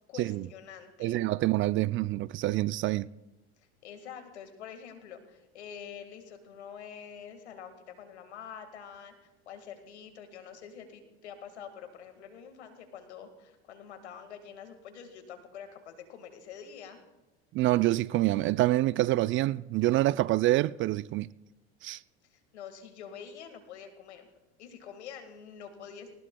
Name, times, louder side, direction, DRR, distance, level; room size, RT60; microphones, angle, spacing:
voice 1, 0.1-1.2 3.6-17.0 22.3-24.3 24.6-26.1, left 7 dB, 85° left, 1.9 m, -46 dB
voice 2, 1.0-3.1 17.5-21.3 21.8-22.0, right 16 dB, 40° right, 0.4 m, -26 dB
19.5 x 19.0 x 2.3 m
hypercardioid pair, 80°, 33 cm